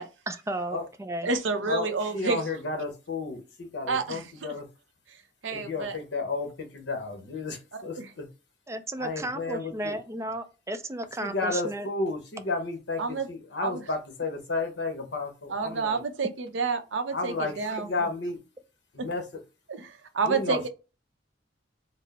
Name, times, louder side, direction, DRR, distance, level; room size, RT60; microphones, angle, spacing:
voice 1, 0.3-1.3 8.7-11.9, right 1 dB, 15° right, 0.4 m, -34 dB
voice 2, 1.2-2.4 3.9-4.3 5.4-6.0 7.7-8.1 13.0-13.3 13.6-13.8 15.5-17.9 19.0-19.1 19.7-20.7, right 4 dB, 90° right, 0.7 m, -29 dB
voice 3, 2.1-4.6 5.5-8.3 9.0-10.0 11.2-13.0 13.3-16.0 17.1-18.4 18.9-19.2 20.2-20.7, left 3 dB, 65° left, 0.9 m, -32 dB
4.3 x 2.0 x 4.1 m
head